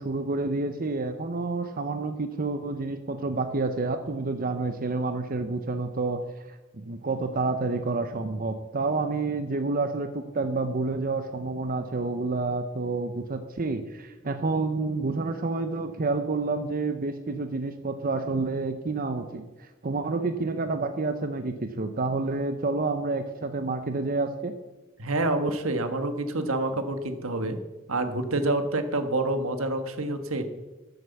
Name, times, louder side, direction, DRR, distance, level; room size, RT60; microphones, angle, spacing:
voice 1, 0.0-6.2 6.5-24.5, right 3 dB, 45° right, 8 dB, 0.7 m, -29 dB
voice 2, 25.0-27.6 27.9-30.5, right 2 dB, 80° right, 8 dB, 1.4 m, -27 dB
13.5 x 7.9 x 7.1 m, 1.1 s
head